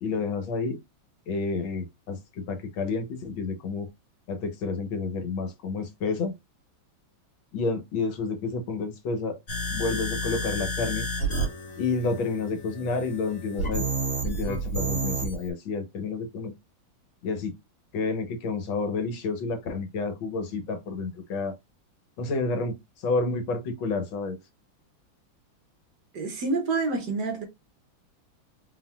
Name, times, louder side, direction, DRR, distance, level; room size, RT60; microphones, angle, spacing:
voice 1, 0.0-0.8 1.3-3.9 4.3-6.3 7.5-9.4 9.7-11.1 11.8-13.8 14.2-16.5 17.2-17.5 17.9-21.6 22.2-24.4, left 4 dB, 80° left, 1.8 m, -30 dB
sound 1, 9.5-15.5, right 2 dB, 40° left, 2.4 m, -30 dB
voice 2, 26.1-27.4, right 3 dB, 60° right, 1.6 m, -27 dB
4.3 x 4.0 x 2.3 m
omnidirectional pair, 2.2 m